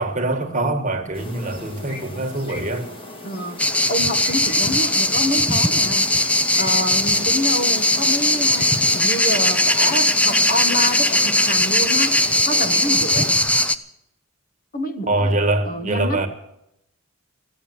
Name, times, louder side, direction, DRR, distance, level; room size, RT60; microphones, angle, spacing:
voice 1, 0.0-2.9 15.1-16.3, right 2 dB, 35° right, 1.6 m, -23 dB
sound 1, 1.1-13.3, left 1 dB, 25° left, 1.8 m, -37 dB
voice 2, 3.2-3.6 3.9-6.1 6.6-12.2 12.4-13.3 14.7-16.3, left 1 dB, 40° left, 1.4 m, -27 dB
sound 2, 3.6-13.7, left 1 dB, 5° left, 0.5 m, -19 dB
14.5 x 8.7 x 9.5 m
head